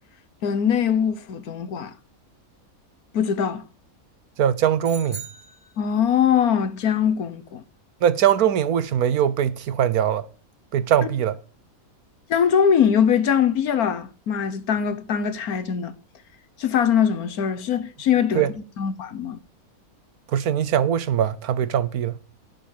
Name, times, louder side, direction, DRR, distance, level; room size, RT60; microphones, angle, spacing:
voice 1, 0.4-1.9 3.1-3.6 5.8-7.6 12.3-15.9 16.6-18.4 18.8-19.4, left 8 dB, 85° left, 1.6 m, -22 dB
voice 2, 4.4-5.2 8.0-10.2 10.7-11.4 18.3-18.5 20.3-22.1, right 9 dB, 90° right, 1.4 m, -21 dB
sound 1, 4.8-6.3, right 4 dB, 45° left, 6.4 m, -41 dB
11.0 x 7.7 x 7.1 m
omnidirectional pair, 1.5 m